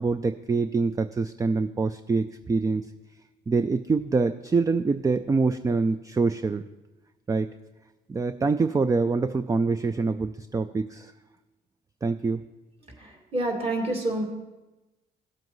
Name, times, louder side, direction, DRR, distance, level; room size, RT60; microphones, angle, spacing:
voice 1, 0.0-2.9 3.5-6.6 7.3-7.5 8.1-11.1 12.0-12.4, right 4 dB, 20° right, 10 dB, 0.3 m, -25 dB
voice 2, 12.9-14.2, right 1 dB, 35° right, -1 dB, 2.4 m, -28 dB
16.0 x 7.5 x 3.1 m, 1.1 s
cardioid pair, 85°, 17 cm